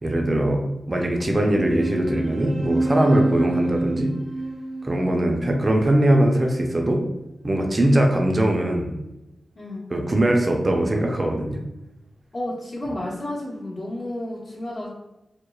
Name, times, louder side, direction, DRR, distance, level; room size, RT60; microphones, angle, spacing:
voice 1, 0.0-4.1 4.8-7.0 7.4-9.0 9.9-11.6, right 1 dB, 35° right, 2 dB, 0.4 m, -21 dB
sound 1, 1.5-6.4, right 1 dB, 85° right, 1.0 m, -27 dB
voice 2, 9.5-9.9 12.3-14.9, left 1 dB, 65° left, -7 dB, 0.8 m, -31 dB
2.9 x 2.0 x 2.3 m, 0.93 s
cardioid pair, 60°, 0 cm